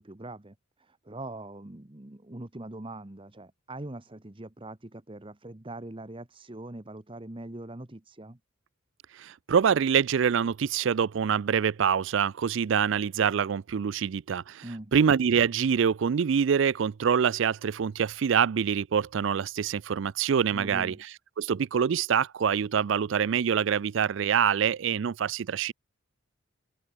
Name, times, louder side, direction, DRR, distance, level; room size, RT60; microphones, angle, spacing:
voice 1, 0.0-8.4 14.6-14.9 20.5-21.0, right 2 dB, 25° right, 1.0 m, -42 dB
voice 2, 9.2-14.6 14.9-20.9 21.4-25.7, right 7 dB, 60° right, 0.4 m, -25 dB
open air
head